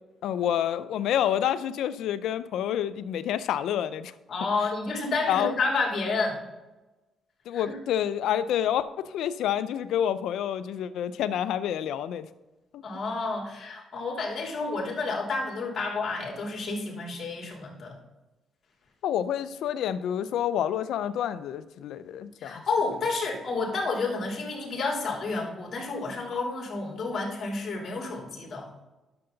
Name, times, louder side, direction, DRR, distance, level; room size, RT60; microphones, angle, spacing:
voice 1, 0.2-4.1 5.3-5.5 7.5-12.3 12.7-12.8 19.0-22.6, left 10 dB, 80° left, 14 dB, 0.5 m, -28 dB
voice 2, 4.3-6.4 7.5-7.8 12.8-18.0 22.4-28.7, left 3 dB, 50° left, -2 dB, 3.3 m, -30 dB
10.5 x 6.9 x 3.9 m, 1.1 s
cardioid pair, 90°, 0 cm